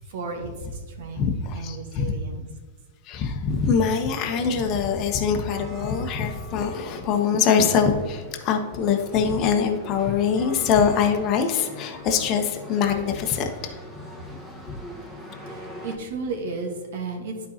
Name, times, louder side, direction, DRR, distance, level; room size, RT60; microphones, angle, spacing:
voice 1, 0.1-2.5 15.4-17.5, right 3 dB, 65° right, 3 dB, 1.4 m, -34 dB
voice 2, 1.2-2.1 3.0-13.8 14.7-14.8, left 6 dB, 40° left, 4 dB, 0.9 m, -23 dB
sound 1, 3.5-16.0, left 1 dB, 10° right, 1.3 m, -42 dB
11.5 x 4.5 x 2.9 m, 1.3 s
hypercardioid pair, 125°, 0 cm